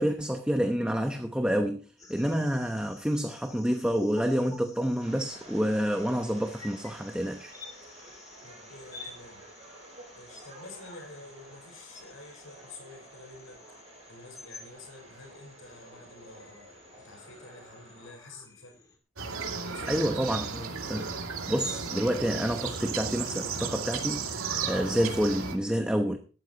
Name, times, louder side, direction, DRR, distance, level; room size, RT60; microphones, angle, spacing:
voice 1, 0.0-1.8 2.1-7.5 19.9-26.2, equal, 5° right, 0.8 m, -28 dB
sound 1, 2.0-19.0, left 2 dB, 15° left, 2.2 m, -50 dB
sound 2, 5.0-18.1, right 1 dB, 30° right, 6.1 m, -51 dB
voice 2, 8.4-9.4 10.1-13.6 14.1-18.8 19.5-20.1, left 2 dB, 75° left, 5.6 m, -49 dB
sound 3, 19.2-25.6, right 5 dB, 90° right, 2.4 m, -34 dB
17.5 x 13.0 x 2.9 m
head